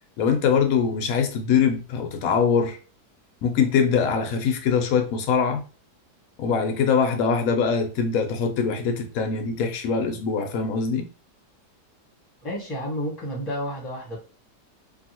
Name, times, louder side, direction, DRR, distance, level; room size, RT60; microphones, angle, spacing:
voice 1, 0.2-2.8 3.4-5.6 6.4-11.1, left 6 dB, 70° left, 0.9 m, -23 dB
voice 2, 12.4-14.2, equal, 15° left, 1.0 m, -31 dB
2.8 x 2.6 x 2.7 m
omnidirectional pair, 1.8 m